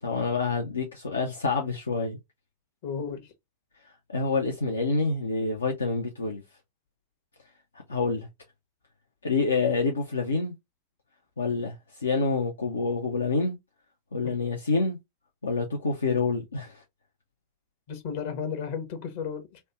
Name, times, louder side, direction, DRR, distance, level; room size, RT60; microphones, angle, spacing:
voice 1, 0.0-2.2 3.8-6.4 7.9-8.3 9.2-10.5 11.4-13.6 14.1-15.0 15.4-16.8, left 4 dB, 75° left, 0.6 m, -27 dB
voice 2, 2.8-3.3 7.9-8.0 14.2-14.3 17.9-19.6, left 6 dB, 50° left, 0.9 m, -34 dB
3.2 x 2.2 x 2.8 m
figure-of-eight pair, 90°, 0 cm